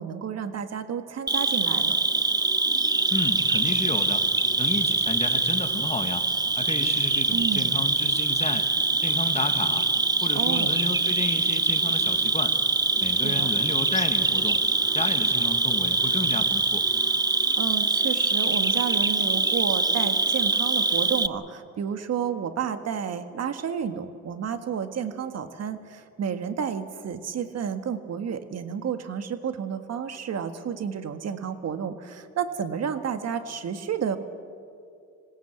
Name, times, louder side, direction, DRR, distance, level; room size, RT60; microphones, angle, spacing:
voice 1, 0.0-2.0 7.3-7.8 10.3-10.8 13.2-13.5 17.6-34.2, right 7 dB, 55° right, 8 dB, 1.7 m, -31 dB
Cricket, 1.3-21.3, right 3 dB, 15° right, 0.6 m, -24 dB
voice 2, 3.1-4.3 4.6-6.3 6.6-9.9 10.2-12.6 13.0-14.6 14.9-16.9, left 3 dB, 20° left, 7 dB, 1.9 m, -32 dB
26.5 x 17.5 x 8.1 m, 2.4 s
cardioid pair, 90°, 30 cm